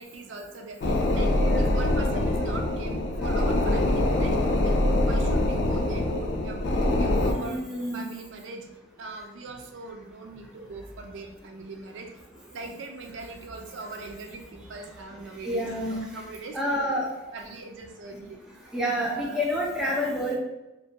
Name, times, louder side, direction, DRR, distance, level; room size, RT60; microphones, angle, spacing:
voice 1, 0.0-4.4 4.6-7.6 7.9-8.7 9.0-12.1 12.5-18.4 19.1-19.4 19.8-19.9, right 3 dB, 75° right, 4 dB, 0.4 m, -41 dB
sound 1, 0.8-7.3, left 1 dB, 60° left, 0.4 m, -24 dB
voice 2, 1.3-1.6 6.6-8.0 15.4-16.0 16.5-17.1 18.1-18.2 18.7-20.4, equal, 5° right, -4 dB, 0.4 m, -29 dB
2.5 x 2.1 x 2.7 m, 0.99 s
head